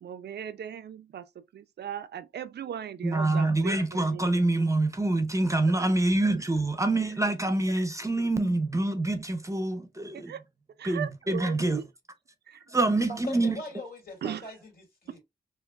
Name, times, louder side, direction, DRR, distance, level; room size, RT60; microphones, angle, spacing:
voice 1, 0.0-1.3 1.5-4.3 10.1-10.4 10.8-11.8 12.5-12.6 14.2-14.5, right 9 dB, 85° right, 0.5 m, -38 dB
voice 2, 3.0-10.3 10.8-11.8 12.7-13.6, right 2 dB, 20° right, 0.7 m, -26 dB
voice 3, 13.1-15.2, left 2 dB, 65° left, 2.4 m, -41 dB
4.6 x 2.6 x 2.4 m
cardioid pair, 75°, 17 cm